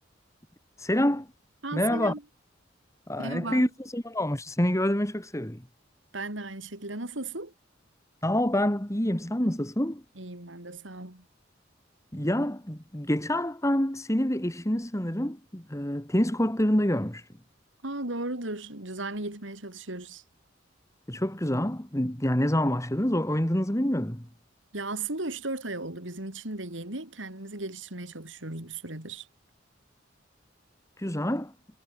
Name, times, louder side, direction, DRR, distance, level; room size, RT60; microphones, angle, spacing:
voice 1, 0.8-1.3 1.7-2.1 3.1-5.6 8.2-10.0 12.1-17.3 21.1-24.3 31.0-31.5, left 1 dB, 15° left, 2.7 m, -27 dB
voice 2, 1.6-2.2 3.2-3.7 6.1-7.5 10.2-11.2 17.8-20.2 24.7-29.3, right 2 dB, 75° right, 4.2 m, -36 dB
head